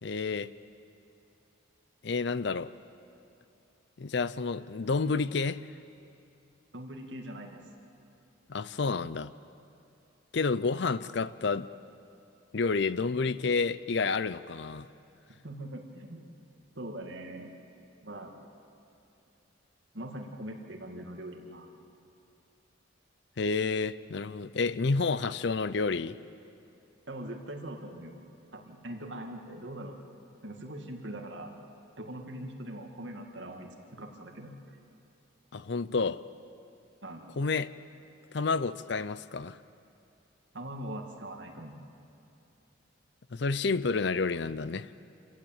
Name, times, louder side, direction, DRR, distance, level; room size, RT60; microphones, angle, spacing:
voice 1, 0.0-0.5 2.0-2.7 4.0-5.6 8.5-9.3 10.3-11.7 12.5-14.9 23.4-26.2 35.5-36.2 37.4-37.7 38.3-39.6 43.3-44.9, left 4 dB, 60° left, 16 dB, 0.5 m, -29 dB
voice 2, 6.7-7.6 15.4-16.3 16.8-17.5 18.0-18.4 19.9-21.7 27.1-28.2 28.5-30.0 30.4-31.6 32.0-34.6 37.0-37.3 40.5-41.8, right 1 dB, 70° right, 3 dB, 2.2 m, -41 dB
27.5 x 15.0 x 9.0 m, 2.7 s
head